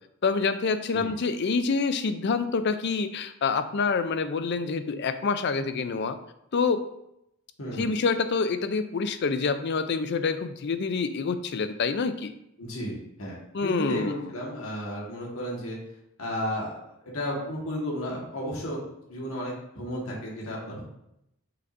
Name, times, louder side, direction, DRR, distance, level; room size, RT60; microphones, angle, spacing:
voice 1, 0.2-6.2 6.5-6.8 7.8-12.3 13.5-14.2, left 4 dB, 50° left, 10 dB, 0.4 m, -27 dB
voice 2, 7.6-7.9 12.6-15.8 16.2-16.7 17.0-18.8 19.1-20.8, equal, 75° left, -3 dB, 1.6 m, -33 dB
6.2 x 5.8 x 2.6 m, 0.80 s
head